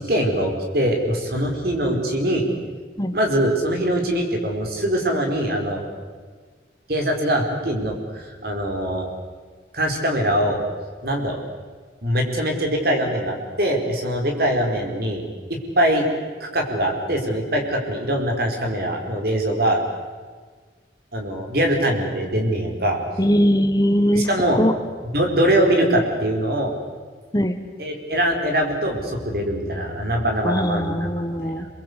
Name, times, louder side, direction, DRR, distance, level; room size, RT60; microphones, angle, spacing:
voice 1, 0.0-2.4 3.1-5.8 6.9-9.1 9.7-10.6 11.0-11.4 12.0-15.2 15.5-16.1 16.4-19.8 21.1-23.0 24.1-24.7 25.1-26.7 27.8-31.0 31.3-31.7, right 1 dB, 55° right, 2 dB, 4.9 m, -22 dB
voice 2, 23.2-24.3 24.6-24.7 27.3-27.6 30.4-31.7, equal, 20° left, 8 dB, 1.3 m, -20 dB
28.0 x 22.5 x 8.3 m, 1.5 s
head